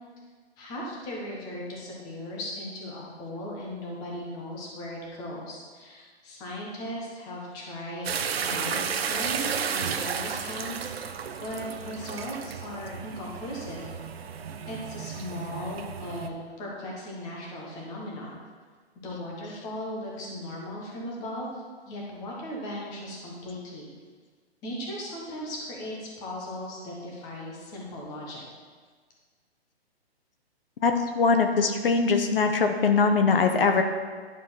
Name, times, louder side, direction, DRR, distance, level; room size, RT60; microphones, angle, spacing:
voice 1, 0.6-13.9 14.6-18.3 19.0-23.9 24.6-28.4, left 1 dB, 10° left, -3 dB, 1.1 m, -37 dB
sound 1, 8.0-16.3, right 7 dB, 65° right, 0.9 m, -33 dB
voice 2, 30.8-33.8, left 4 dB, 60° left, 6 dB, 0.9 m, -22 dB
11.0 x 5.0 x 5.7 m, 1.5 s
hypercardioid pair, 170°, 32 cm